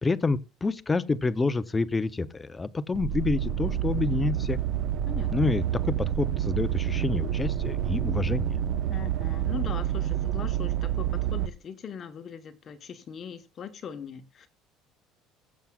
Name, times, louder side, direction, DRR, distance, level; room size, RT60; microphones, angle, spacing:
voice 1, 0.0-4.6 5.3-8.6, left 3 dB, 15° left, 0.5 m, -28 dB
sound 1, 2.9-11.5, right 10 dB, 60° right, 0.7 m, -28 dB
voice 2, 8.9-14.5, left 7 dB, 35° left, 0.9 m, -40 dB
22.0 x 7.3 x 2.2 m
cardioid pair, 150°, 0 cm